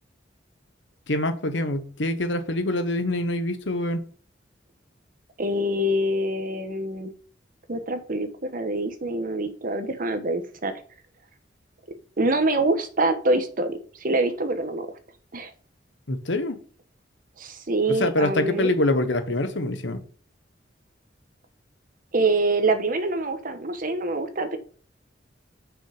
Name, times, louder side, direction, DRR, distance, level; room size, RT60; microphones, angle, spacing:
voice 1, 1.1-4.0 16.1-16.6 17.9-20.0, left 1 dB, 75° left, 1.2 m, -25 dB
voice 2, 5.4-7.1 7.7-10.7 12.2-14.9 15.3-15.5 17.4-18.7 22.1-24.6, right 2 dB, 50° right, 1.2 m, -25 dB
6.3 x 5.4 x 5.0 m
head